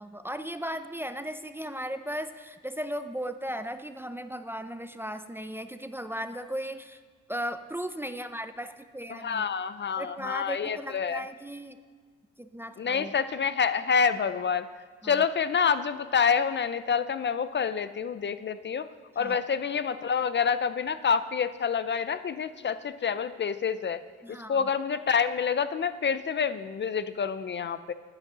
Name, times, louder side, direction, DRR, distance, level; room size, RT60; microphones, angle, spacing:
voice 1, 0.0-7.0 7.3-9.4 10.0-11.8 12.4-13.1 15.0-15.2 19.2-19.4 24.2-24.7, equal, 10° right, 9 dB, 0.5 m, -36 dB
voice 2, 9.1-11.2 12.8-14.7 15.0-18.9 19.2-24.0 24.3-27.9, left 6 dB, 40° left, 13 dB, 0.5 m, -27 dB
9.8 x 8.2 x 6.8 m, 1.5 s
cardioid pair, 90°, 30 cm